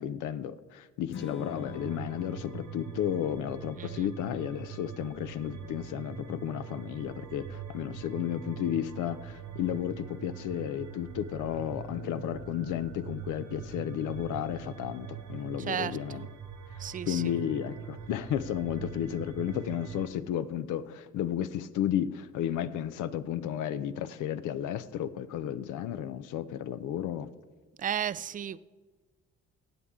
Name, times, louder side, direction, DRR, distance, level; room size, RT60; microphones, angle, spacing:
voice 1, 0.0-16.3 16.7-27.3, left 10 dB, 85° left, 13 dB, 0.6 m, -33 dB
Strum, 1.1-7.4, left 6 dB, 40° left, 1.2 m, -48 dB
sound 1, 1.4-20.1, right 7 dB, 70° right, 1.4 m, -43 dB
voice 2, 3.8-4.1 15.7-16.2 16.8-17.3 27.8-28.6, right 9 dB, 30° right, 17 dB, 0.4 m, -34 dB
15.5 x 8.6 x 3.7 m, 1.3 s
cardioid pair, 90°, 30 cm